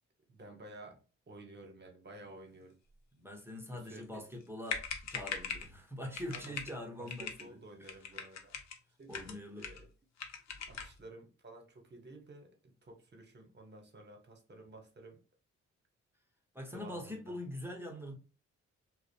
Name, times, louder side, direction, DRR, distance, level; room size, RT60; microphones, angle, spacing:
voice 1, 0.3-1.0 1.3-2.8 3.7-4.3 6.3-6.6 7.0-8.6 9.0-9.9 10.5-15.2 16.6-17.4, right 2 dB, 35° right, 0.9 m, -53 dB
voice 2, 3.2-7.5 7.8-7.9 9.1-9.7 16.5-18.1, left 1 dB, 10° right, 0.7 m, -43 dB
sound 1, 4.4-4.5 4.7-5.7 6.1-6.7 7.1-7.5 7.8-8.8 9.1-9.9 10.2-11.0, left 6 dB, 60° left, 0.6 m, -41 dB
2.4 x 2.0 x 2.6 m
cardioid pair, 55°, 31 cm